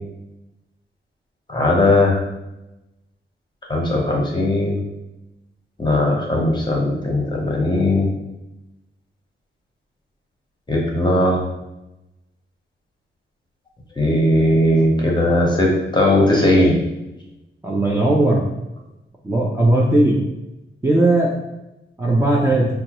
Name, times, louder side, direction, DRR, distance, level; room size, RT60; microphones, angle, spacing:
voice 1, 1.5-2.2 3.7-4.8 5.8-8.1 10.7-11.4 14.0-16.7, left 1 dB, 20° left, -1 dB, 0.9 m, -18 dB
voice 2, 17.6-18.4 19.2-20.2 20.8-21.4 22.0-22.7, right 1 dB, 15° right, -4 dB, 0.5 m, -17 dB
5.1 x 2.3 x 2.9 m, 0.94 s
wide cardioid pair, 135°, 20 cm